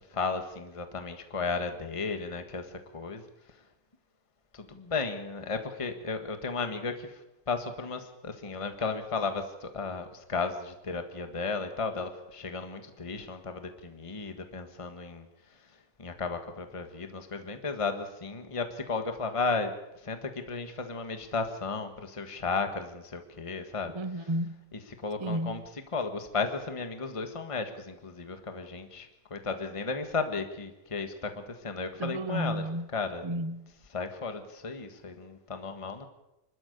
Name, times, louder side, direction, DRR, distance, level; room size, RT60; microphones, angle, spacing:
voice 1, 0.1-3.2 4.5-7.2 7.5-15.3 16.0-19.7 20.0-23.9 25.0-25.6 25.9-32.6 32.9-33.2 33.9-36.0, left 4 dB, 20° left, 1.5 m, -34 dB
voice 2, 23.9-24.6 25.2-25.6 32.0-32.9 33.2-33.7, right 1 dB, 30° right, 0.5 m, -32 dB
26.0 x 12.5 x 8.2 m
omnidirectional pair, 1.9 m